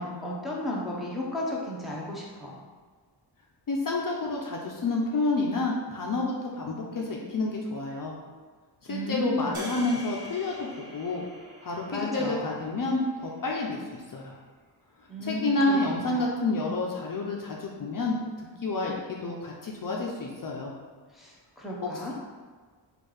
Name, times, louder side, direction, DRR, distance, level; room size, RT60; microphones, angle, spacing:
voice 1, 0.0-2.6 8.9-9.7 11.9-12.5 15.1-15.8 16.1-16.2 21.1-22.1, left 1 dB, ahead, -5 dB, 0.7 m, -33 dB
voice 2, 3.7-8.1 8.9-11.3 11.6-14.3 15.2-18.2 18.6-20.7, left 2 dB, 50° left, -2 dB, 0.6 m, -29 dB
sound 1, 9.5-13.9, right 1 dB, 55° right, 0.7 m, -46 dB
4.4 x 2.5 x 4.8 m, 1.5 s
wide cardioid pair, 160°, 45 cm